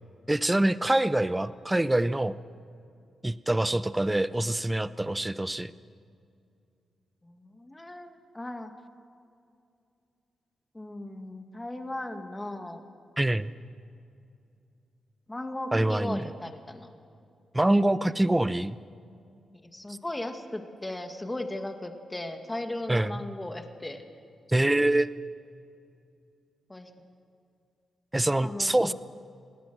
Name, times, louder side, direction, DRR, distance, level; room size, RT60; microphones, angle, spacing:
voice 1, 0.3-2.4 3.2-5.7 13.2-13.5 15.7-16.2 17.5-18.8 22.9-23.1 24.5-25.1 28.1-28.9, right 1 dB, 15° right, 15 dB, 0.8 m, -25 dB
voice 2, 7.2-8.7 10.7-12.8 15.3-16.9 19.5-24.0 26.7-26.9 28.4-28.9, left 1 dB, 15° left, 5 dB, 2.1 m, -37 dB
27.0 x 18.0 x 6.4 m, 2.5 s
cardioid pair, 65°, 0 cm